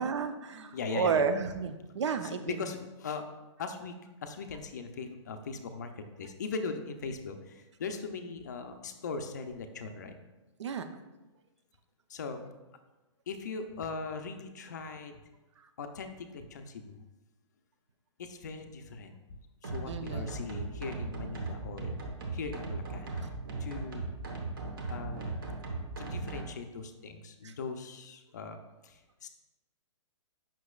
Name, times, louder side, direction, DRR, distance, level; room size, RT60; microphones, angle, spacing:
voice 1, 0.0-2.6 10.6-10.9 19.9-20.3 27.4-27.5, right 5 dB, 65° right, 9 dB, 0.6 m, -32 dB
voice 2, 0.7-1.2 2.2-3.2 3.6-5.9 6.2-10.1 12.1-12.4 13.3-15.1 15.8-17.0 18.2-19.2 19.6-22.0 22.3-23.1 23.6-24.0 24.9-25.3 26.0-28.6 28.8-28.9 29.2-29.3, left 4 dB, 35° left, 7 dB, 0.5 m, -39 dB
sound 1, 19.6-26.4, right 3 dB, 45° right, 1.0 m, -37 dB
8.2 x 5.8 x 2.4 m, 1.1 s
hypercardioid pair, 180°, 16 cm